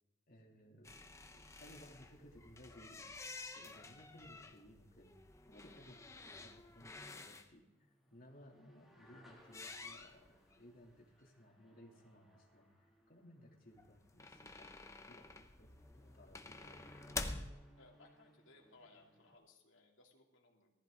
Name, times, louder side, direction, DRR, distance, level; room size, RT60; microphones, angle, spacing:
voice 1, 0.3-15.7 15.9-17.0, equal, 45° left, -1 dB, 3.0 m, -61 dB
sound 1, 0.8-7.5 9.4-10.6 10.9-11.0 11.2-11.3 13.8-17.5, left 3 dB, 15° left, 0.8 m, -49 dB
sound 2, 1.5-19.4, equal, ahead, 2.6 m, -67 dB
voice 2, 17.7-20.7, left 2 dB, 65° left, -1 dB, 3.0 m, -64 dB
19.0 x 14.5 x 3.9 m, 1.0 s
head